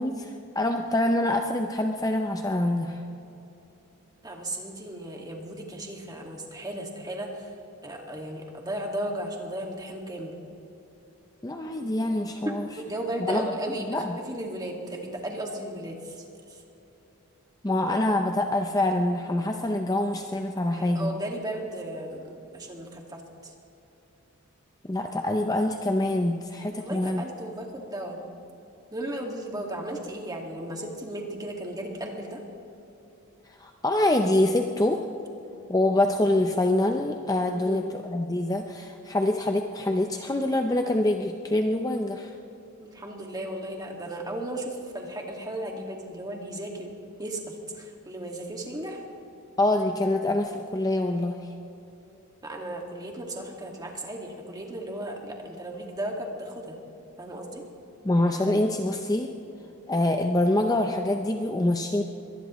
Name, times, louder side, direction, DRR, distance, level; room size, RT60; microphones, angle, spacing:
voice 1, 0.0-3.0 11.4-12.7 13.3-14.2 17.6-21.1 24.9-27.2 33.5-35.0 35.7-42.4 49.6-51.5 58.0-59.3 59.9-62.0, left 1 dB, 15° left, 4 dB, 0.6 m, -25 dB
voice 2, 4.2-7.5 7.8-10.3 12.5-16.6 20.7-23.5 26.7-28.2 28.9-32.4 37.5-37.8 42.8-49.0 52.4-56.8 57.2-57.6, right 1 dB, 15° right, 1 dB, 2.0 m, -35 dB
23.5 x 19.0 x 3.1 m, 3.0 s
head